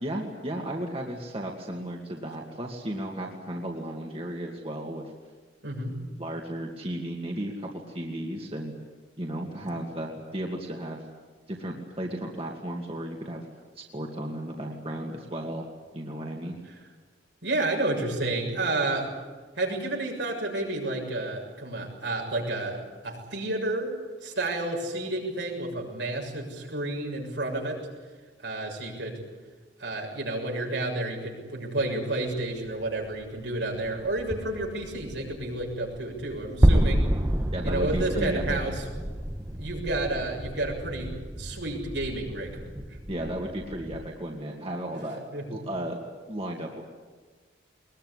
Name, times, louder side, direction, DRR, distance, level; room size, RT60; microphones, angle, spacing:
voice 1, 0.0-5.1 6.2-8.7 9.2-11.0 11.5-13.4 13.8-15.6 15.9-16.6 37.5-38.6 43.1-45.2 45.5-46.8, right 1 dB, 30° right, 0 dB, 2.4 m, -34 dB
voice 2, 5.6-6.0 17.4-19.1 19.6-22.8 23.0-23.9 24.2-27.8 28.4-29.2 29.8-37.1 37.6-38.8 39.6-42.7 45.3-45.6, right 2 dB, 80° right, 0 dB, 6.9 m, -30 dB
sound 1, 33.0-33.2 33.4-44.0, equal, 15° right, 1.2 m, -29 dB
22.0 x 21.5 x 9.9 m, 1.4 s
head